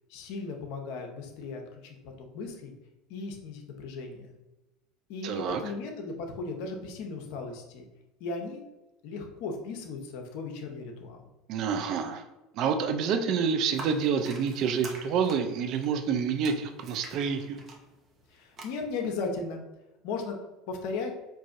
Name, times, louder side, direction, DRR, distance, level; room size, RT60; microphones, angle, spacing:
voice 1, 0.1-2.7 3.1-4.3 5.1-7.8 8.2-8.6 9.0-11.2 18.3-19.6 20.0-20.4 20.7-21.1, left 3 dB, 70° left, 3 dB, 0.7 m, -36 dB
voice 2, 5.2-5.6 11.5-12.2 12.5-17.6, right 6 dB, 55° right, 6 dB, 0.4 m, -28 dB
sound 1, 13.7-18.6, right 3 dB, 40° right, 0.8 m, -46 dB
4.6 x 2.6 x 2.5 m, 1.0 s
supercardioid pair, 100°, 0 cm